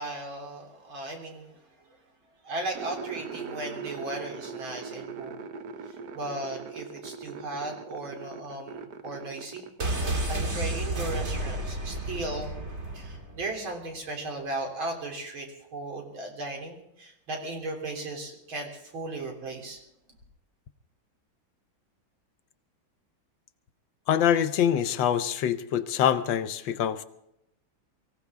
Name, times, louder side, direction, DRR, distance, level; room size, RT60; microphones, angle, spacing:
voice 1, 0.0-1.6 2.4-5.4 6.1-9.6 10.3-12.5 12.9-15.5 15.7-19.8, right 2 dB, 90° right, 1 dB, 4.1 m, -36 dB
sound 1, 2.7-11.7 11.9-12.6, right 5 dB, 60° right, 1.4 m, -41 dB
sound 2, 9.8-13.6 13.8-13.9, right 1 dB, 35° right, 1.9 m, -31 dB
voice 2, 24.1-27.0, left 9 dB, 75° left, 13 dB, 1.5 m, -25 dB
24.0 x 15.5 x 3.6 m, 0.80 s
omnidirectional pair, 2.1 m